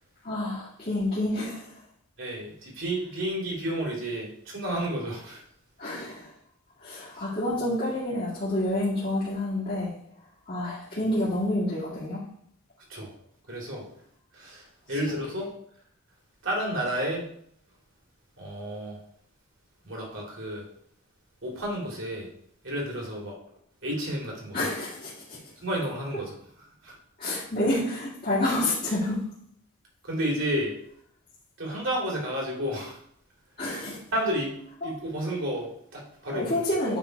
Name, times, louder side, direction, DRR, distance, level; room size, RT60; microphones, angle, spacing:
voice 1, 0.2-1.6 5.8-6.3 6.8-9.9 10.5-12.2 15.0-15.1 24.5-25.4 27.2-29.2 33.6-34.0 34.8-34.9 36.3-37.0, left 1 dB, 40° left, -10 dB, 2.2 m, -28 dB
voice 2, 2.2-5.4 12.9-13.1 13.5-13.8 14.3-15.5 16.4-17.2 18.4-19.0 19.8-20.6 21.4-22.3 22.6-23.3 23.8-24.7 25.6-26.3 26.8-27.0 30.0-30.7 31.6-33.0 34.1-34.5 34.8-36.6, equal, 55° right, -2 dB, 2.8 m, -31 dB
9.1 x 3.9 x 4.6 m, 0.66 s
head